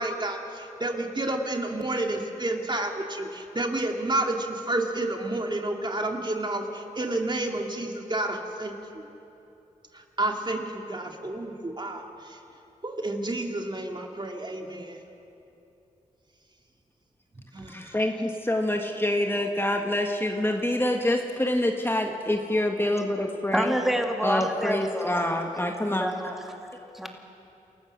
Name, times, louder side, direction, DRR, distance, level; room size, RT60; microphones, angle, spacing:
voice 1, 0.0-9.0 9.9-12.4 12.8-15.0 17.5-18.0, right 2 dB, 30° right, 3 dB, 2.3 m, -30 dB
voice 2, 17.7-23.7 24.2-26.1, left 1 dB, 15° left, 3 dB, 1.7 m, -26 dB
voice 3, 23.5-25.2 25.6-25.7 26.0-26.4 26.9-27.1, equal, ahead, 3 dB, 2.4 m, -27 dB
28.5 x 14.5 x 6.4 m, 2.8 s
cardioid pair, 50°, 14 cm